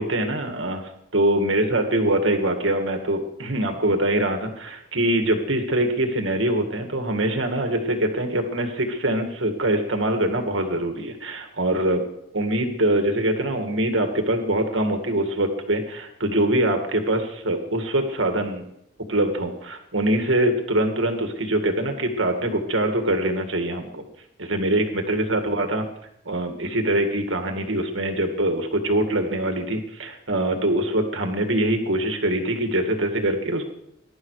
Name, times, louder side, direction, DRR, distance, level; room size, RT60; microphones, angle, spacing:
voice 1, 0.0-12.0 12.3-18.6 19.1-24.1 24.4-25.8 26.3-33.7, right 1 dB, 80° right, 5 dB, 2.0 m, -23 dB
22.0 x 11.5 x 4.8 m, 0.78 s
head